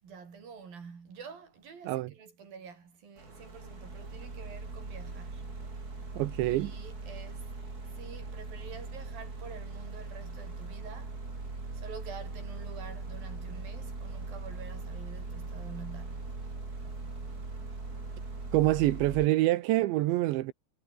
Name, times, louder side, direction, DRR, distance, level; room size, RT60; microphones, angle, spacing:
voice 1, 0.0-5.6 6.4-7.5 7.8-11.2 11.7-16.4, right 6 dB, 55° right, 6.7 m, -48 dB
sound 1, 3.2-19.3, right 3 dB, 20° right, 4.3 m, -40 dB
voice 2, 6.2-6.7 18.5-20.5, right 17 dB, 85° right, 3.4 m, -26 dB
omnidirectional pair, 5.1 m